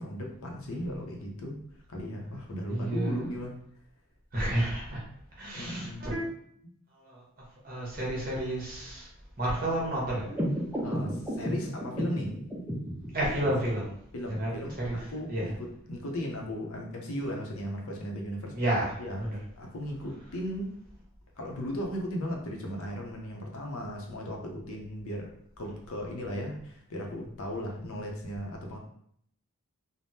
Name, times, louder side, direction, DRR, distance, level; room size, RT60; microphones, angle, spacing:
voice 1, 0.0-1.6 1.9-3.6 5.5-6.0 10.8-12.4 13.4-13.5 14.1-18.6 19.0-19.2 19.6-20.7 21.4-25.3 25.6-28.8, equal, 75° left, 1 dB, 0.6 m, -36 dB
voice 2, 2.7-3.2 4.3-5.0 5.4-6.2 6.9-7.2 7.6-9.1 9.4-10.3 13.1-13.9 14.3-15.0 15.3-15.5 18.5-19.4, right 1 dB, 40° right, -4 dB, 0.9 m, -31 dB
sound 1, 10.3-13.3, equal, 10° right, 0.5 m, -33 dB
3.4 x 2.0 x 2.7 m, 0.67 s
head